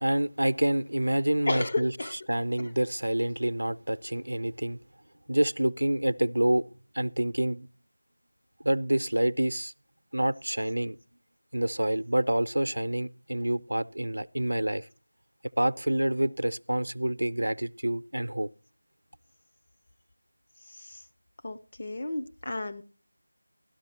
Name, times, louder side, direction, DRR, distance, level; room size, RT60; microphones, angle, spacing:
voice 1, 0.0-1.9 2.3-4.8 5.3-6.7 6.9-7.7 8.6-9.7 10.1-11.0 11.5-14.9 15.6-18.5, right 1 dB, 85° right, 0.5 m, -27 dB
voice 2, 1.5-2.2 2.6-2.7 20.7-21.0 21.4-22.8, left 2 dB, 45° left, 0.7 m, -33 dB
13.0 x 12.0 x 2.9 m
figure-of-eight pair, 170°, 0 cm